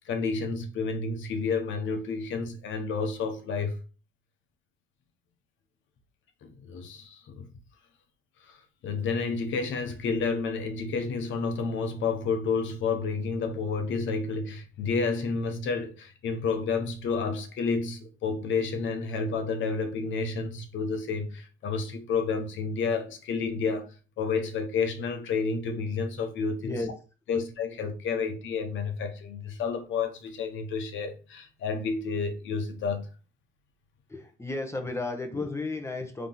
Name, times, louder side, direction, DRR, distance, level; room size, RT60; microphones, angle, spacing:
voice 1, 0.1-3.8 6.4-7.5 8.5-8.6 8.8-26.7 27.3-33.1, left 4 dB, 75° left, 0.9 m, -30 dB
voice 2, 34.1-36.3, left 3 dB, 15° left, 0.9 m, -33 dB
3.6 x 2.9 x 3.8 m
cardioid pair, 90°, 20 cm